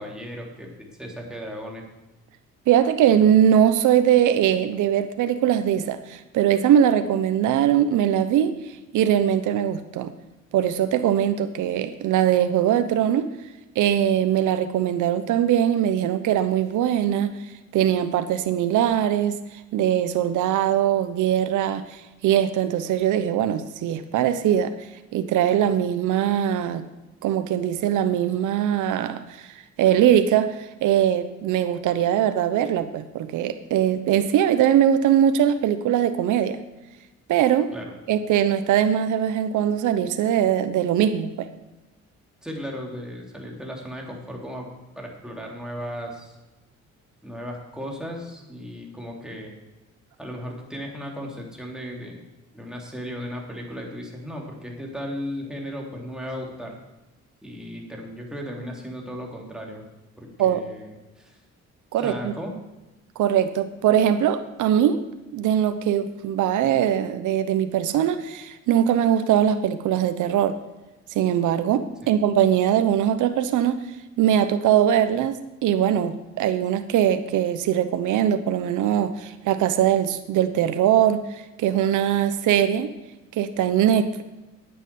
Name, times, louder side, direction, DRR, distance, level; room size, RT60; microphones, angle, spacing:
voice 1, 0.0-1.8 37.7-38.0 42.4-44.7 44.9-46.4 47.2-49.6 50.2-52.2 52.5-56.7 57.4-59.8 60.2-61.4 62.0-62.5 72.0-72.2, equal, ahead, -1 dB, 3.4 m, -36 dB
voice 2, 2.7-8.5 8.9-10.1 10.5-13.3 13.8-17.3 17.7-19.4 19.7-24.7 25.1-26.8 27.2-29.5 29.8-30.5 30.8-36.6 37.3-37.7 38.1-41.5 60.4-60.6 61.9-62.3 63.2-65.0 65.3-70.6 71.1-73.8 74.2-82.9 83.4-84.2, right 10 dB, 80° right, 10 dB, 0.9 m, -21 dB
9.8 x 9.0 x 7.0 m, 1.1 s
cardioid pair, 90°, 30 cm